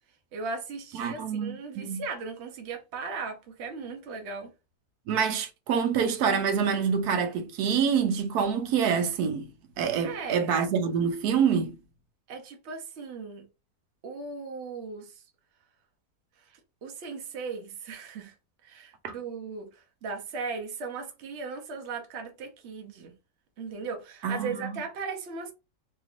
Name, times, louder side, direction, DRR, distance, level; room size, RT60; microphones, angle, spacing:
voice 1, 0.3-4.5 10.0-10.4 12.3-13.5 14.0-15.1 16.8-18.3 18.6-23.1 23.6-25.5, right 4 dB, 55° right, 1.0 m, -37 dB
voice 2, 1.0-2.0 5.1-9.5 9.8-11.7 19.0-19.1 24.2-24.8, right 7 dB, 85° right, 1.1 m, -26 dB
3.2 x 3.0 x 2.4 m
omnidirectional pair, 1.6 m